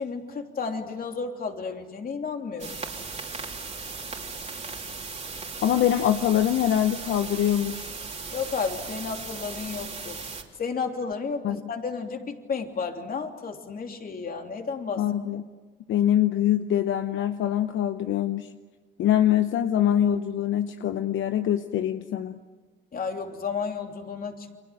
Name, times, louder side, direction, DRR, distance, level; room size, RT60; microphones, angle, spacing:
voice 1, 0.0-2.8 8.3-10.2 10.6-15.0 22.9-24.6, left 5 dB, 45° left, 4 dB, 3.2 m, -32 dB
sound 1, 2.6-10.4, right 4 dB, 35° right, 3.5 m, -37 dB
voice 2, 5.6-8.0 11.4-11.6 15.0-15.4 15.9-18.5 19.0-22.4, left 11 dB, 75° left, 9 dB, 0.9 m, -24 dB
30.0 x 24.0 x 7.6 m, 1.4 s
cardioid pair, 90°, 20 cm